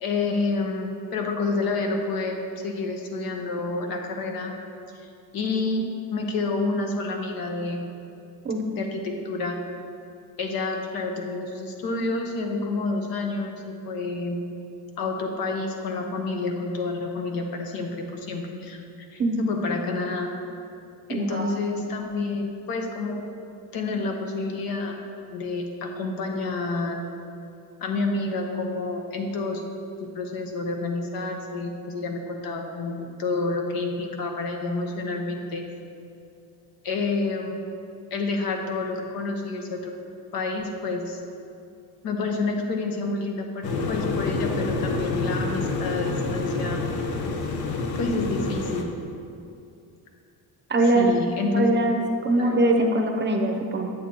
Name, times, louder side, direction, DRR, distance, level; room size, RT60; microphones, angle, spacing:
voice 1, 0.0-4.5 4.9-7.9 8.7-9.6 10.4-14.4 15.0-18.8 19.1-20.3 21.1-23.2 23.7-24.9 25.3-27.0 27.8-29.6 30.0-35.6 36.8-37.5 38.1-39.9 40.3-41.2 42.0-46.8 47.9-48.9 50.9-51.8 52.4-52.6, left 3 dB, 70° left, 2 dB, 1.1 m, -29 dB
voice 2, 21.1-21.6 50.7-51.1 51.5-53.9, right 2 dB, 30° right, 3 dB, 0.7 m, -22 dB
sound 1, 43.6-48.8, left 3 dB, 90° left, 0.8 m, -28 dB
9.1 x 7.5 x 2.9 m, 2.6 s
cardioid pair, 125°, 37 cm